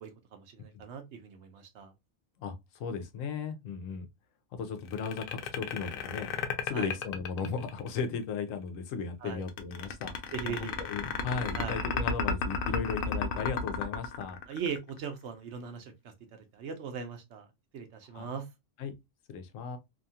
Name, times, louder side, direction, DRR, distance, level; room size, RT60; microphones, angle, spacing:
voice 1, 0.0-1.9 6.7-7.0 9.2-9.4 10.3-10.8 11.5-11.8 14.5-17.5 17.7-18.5, right 6 dB, 65° right, 0.8 m, -39 dB
voice 2, 2.4-4.1 4.5-6.3 6.6-14.4 18.1-18.4 18.8-18.9 19.3-19.8, left 5 dB, 80° left, 1.0 m, -36 dB
sound 1, 4.9-8.1 9.5-15.0, left 5 dB, 65° left, 0.6 m, -33 dB
2.8 x 2.3 x 2.6 m
omnidirectional pair, 1.3 m